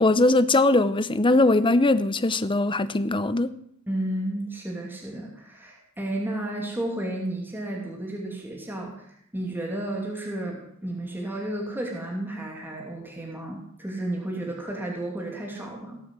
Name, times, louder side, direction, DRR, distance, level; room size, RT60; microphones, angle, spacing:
voice 1, 0.0-3.5, left 2 dB, 25° left, 0.8 m, -20 dB
voice 2, 3.9-16.0, right 1 dB, 10° right, 2.5 m, -32 dB
17.5 x 7.7 x 7.6 m
head